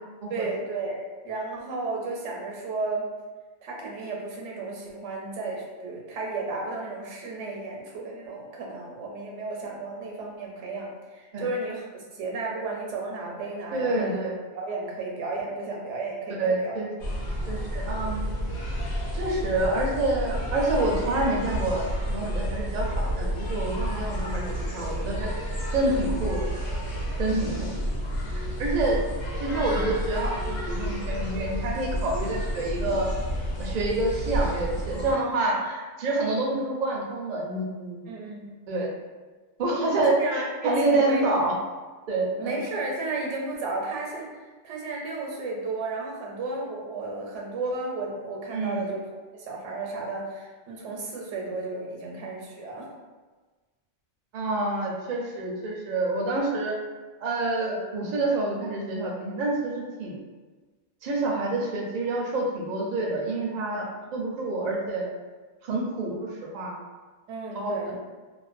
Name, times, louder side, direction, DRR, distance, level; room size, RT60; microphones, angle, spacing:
voice 1, 0.3-3.0 3.6-14.2 14.5-16.8 27.4-27.7 38.1-38.5 40.2-41.2 42.4-44.3 44.6-52.9 67.3-68.0, right 3 dB, 90° right, -1 dB, 0.9 m, -33 dB
voice 2, 13.7-14.3 16.3-16.9 17.5-18.3 19.1-24.4 24.7-25.3 25.7-26.5 27.2-27.7 28.3-29.0 29.4-33.1 33.6-38.1 38.7-38.9 39.6-41.5 42.1-42.6 48.5-48.8 54.3-56.8 57.2-60.2 61.0-65.1 65.6-66.3 66.5-66.7 67.5-67.7, right 2 dB, 60° right, -2 dB, 0.4 m, -27 dB
sound 1, 17.0-35.1, equal, 80° left, 0.9 m, -30 dB
2.4 x 2.1 x 2.4 m, 1.3 s
omnidirectional pair, 1.2 m